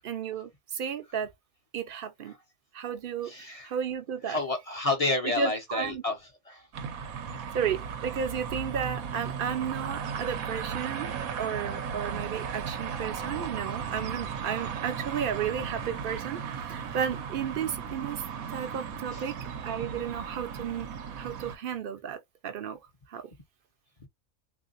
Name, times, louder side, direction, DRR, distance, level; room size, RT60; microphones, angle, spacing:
voice 1, 0.0-1.3 1.7-2.3 2.7-4.4 5.4-6.0 7.5-18.2 18.5-20.9 21.2-22.8 23.1-23.2, right 8 dB, 55° right, 0.7 m, -33 dB
voice 2, 3.2-3.7 4.2-6.2 6.5-6.7 7.3-7.4 11.3-11.4 18.3-18.4 19.1-19.2 24.0-24.1, left 2 dB, 35° left, 0.6 m, -30 dB
sound 1, 6.7-21.6, right 6 dB, 85° right, 1.1 m, -36 dB
3.7 x 2.7 x 2.5 m
omnidirectional pair, 1.4 m